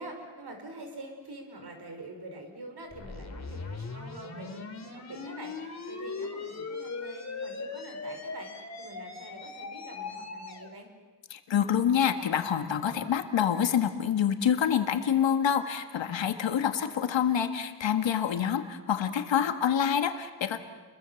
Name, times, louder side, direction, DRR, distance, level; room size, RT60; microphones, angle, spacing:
voice 1, 0.0-10.9, right 2 dB, 60° right, 4 dB, 5.6 m, -45 dB
sound 1, 2.9-10.7, left 4 dB, 35° left, 2.9 m, -39 dB
voice 2, 11.3-20.6, left 8 dB, 80° left, 8 dB, 1.8 m, -27 dB
29.5 x 22.5 x 7.2 m, 1.4 s
cardioid pair, 80°, 44 cm